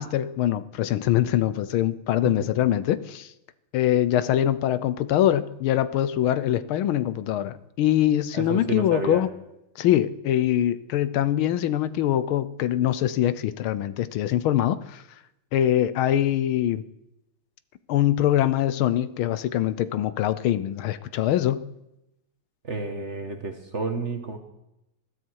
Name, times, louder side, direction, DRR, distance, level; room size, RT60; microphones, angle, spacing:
voice 1, 0.0-3.3 3.7-9.3 9.8-15.0 15.5-16.8 17.9-21.7, left 12 dB, 75° left, 15 dB, 1.5 m, -23 dB
voice 2, 8.3-9.2 22.6-24.4, right 4 dB, 40° right, 6 dB, 1.3 m, -30 dB
20.0 x 13.0 x 4.7 m, 0.88 s
omnidirectional pair, 2.4 m